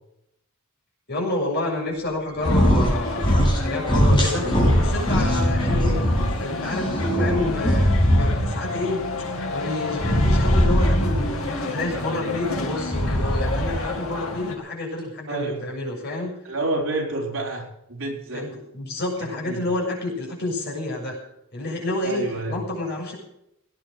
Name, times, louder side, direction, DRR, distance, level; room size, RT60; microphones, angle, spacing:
voice 1, 1.1-3.3 3.6-4.5 4.8-6.0 6.4-9.0 9.5-16.3 18.3-21.2 21.5-23.2, left 2 dB, 50° left, -2 dB, 7.0 m, -29 dB
sound 1, 2.4-14.5, left 2 dB, 75° left, 2.4 m, -30 dB
sound 2, 2.4-2.9 3.2-3.6 3.9-6.2 6.7-8.6 10.0-11.4 12.8-13.9, equal, 20° left, 5.7 m, -20 dB
voice 2, 15.3-15.6 16.4-18.4 19.4-19.6 22.0-22.6, right 2 dB, 60° right, 0 dB, 4.5 m, -28 dB
18.5 x 9.7 x 6.6 m, 0.80 s
head